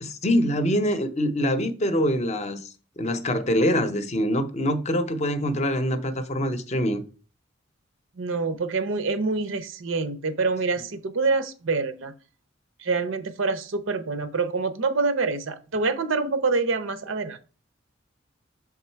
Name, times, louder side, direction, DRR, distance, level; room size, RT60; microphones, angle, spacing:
voice 1, 0.0-2.7 3.0-7.0, equal, 35° left, 0.6 m, -24 dB
voice 2, 8.2-12.1 12.8-17.4, right 4 dB, 90° right, 0.7 m, -26 dB
6.2 x 3.6 x 4.4 m
head